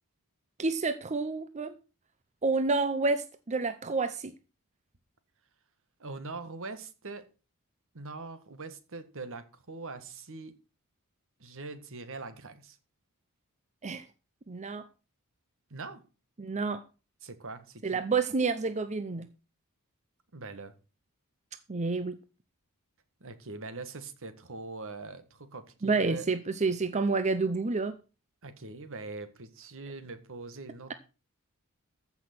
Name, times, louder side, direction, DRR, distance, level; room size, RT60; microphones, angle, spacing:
voice 1, 0.6-1.7 2.4-4.3 13.8-14.1 14.5-14.8 16.4-16.8 17.8-19.3 21.7-22.1 25.8-28.0, right 4 dB, 30° right, 11 dB, 0.7 m, -29 dB
voice 2, 6.0-7.3 7.9-10.5 11.4-12.8 15.7-16.0 17.2-18.0 20.3-20.7 23.2-26.3 28.4-31.0, right 3 dB, 65° right, 11 dB, 1.6 m, -42 dB
14.5 x 6.1 x 6.0 m, 0.33 s
head